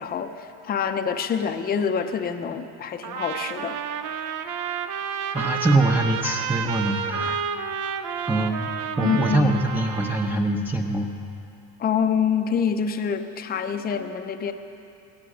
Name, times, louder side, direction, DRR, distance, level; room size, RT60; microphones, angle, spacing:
voice 1, 0.0-3.8 9.0-9.6 11.8-14.5, left 7 dB, 25° left, 6 dB, 0.7 m, -26 dB
Trumpet, 3.0-10.4, right 7 dB, 50° right, 0.9 m, -30 dB
voice 2, 5.3-7.5 8.2-8.7 9.0-11.1, right 2 dB, 5° right, -1 dB, 0.8 m, -23 dB
18.5 x 13.0 x 5.0 m, 2.7 s
cardioid pair, 130°, 39 cm